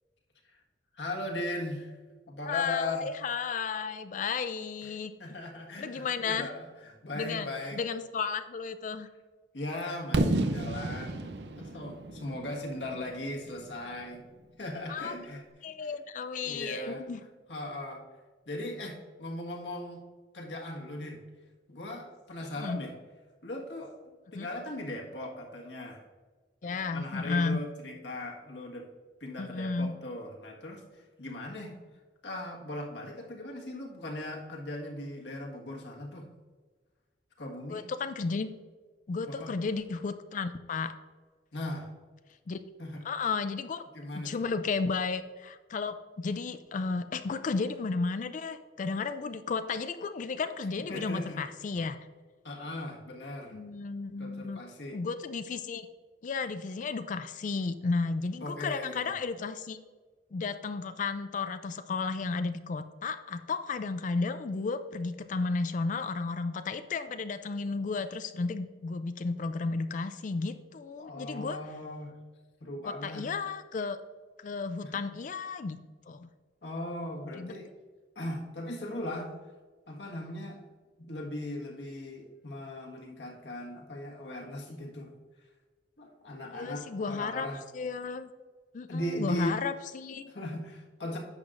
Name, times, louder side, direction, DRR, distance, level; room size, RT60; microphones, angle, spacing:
voice 1, 0.9-1.9 2.3-3.1 4.8-4.9 5.2-7.8 9.5-11.2 11.6-14.2 14.6-15.9 16.4-17.0 17.5-18.0 18.5-20.0 20.3-21.2 21.7-22.9 23.4-24.0 24.3-26.0 26.6-28.9 29.2-31.8 32.2-36.3 37.4-37.9 39.3-39.5 41.5-41.9 42.8-43.0 43.9-44.4 50.9-51.4 52.4-53.6 54.2-55.0 58.4-59.1 71.0-72.1 72.6-73.3 74.8-75.0 76.6-77.7 78.1-79.3 79.9-80.6 81.1-85.1 86.0-87.6 88.9-89.6 90.3-91.2, left 1 dB, 75° left, 0 dB, 1.6 m, -38 dB
voice 2, 2.5-5.1 5.8-6.5 7.1-9.1 14.9-15.1 15.6-17.2 22.5-22.8 24.3-24.5 26.6-27.6 29.4-30.0 37.7-38.5 39.1-40.9 42.5-42.6 43.0-43.8 44.1-52.0 53.5-54.6 54.9-55.9 56.2-59.8 60.3-71.6 73.0-74.0 74.4-75.8 76.1-76.3 77.4-77.5 86.5-87.5 87.7-88.3 88.7-90.3, left 4 dB, 45° left, 10 dB, 0.4 m, -33 dB
Fireworks, 10.1-14.0, right 2 dB, 65° right, 0.6 m, -32 dB
10.5 x 7.4 x 2.5 m, 1.4 s
head